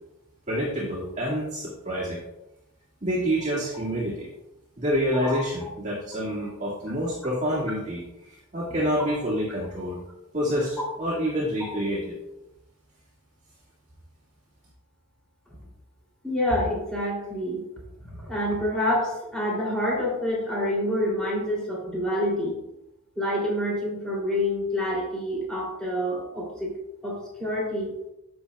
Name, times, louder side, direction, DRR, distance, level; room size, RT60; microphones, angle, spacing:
voice 1, 0.5-2.2 3.0-4.3 4.8-8.0 8.3-10.0 10.3-12.2, equal, 35° right, -5 dB, 1.9 m, -27 dB
voice 2, 16.2-17.6 18.0-22.5 23.2-26.7 27.0-27.9, left 1 dB, 5° left, -5 dB, 2.9 m, -27 dB
10.0 x 7.1 x 2.3 m, 0.90 s
head